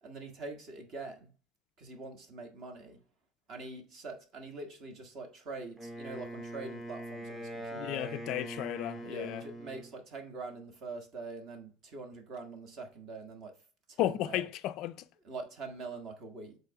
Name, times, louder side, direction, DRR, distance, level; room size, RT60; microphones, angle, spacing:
voice 1, 0.0-1.3 1.8-3.0 3.5-8.1 9.1-13.5 13.9-14.5 15.2-16.6, right 3 dB, 35° right, 1.5 m, -44 dB
Wind instrument woodwind instrument, 5.8-9.9, right 1 dB, 5° right, 2.4 m, -42 dB
voice 2, 7.8-9.5 14.0-15.1, left 14 dB, 45° left, 0.4 m, -34 dB
8.0 x 3.3 x 4.8 m
cardioid pair, 165°, 0 cm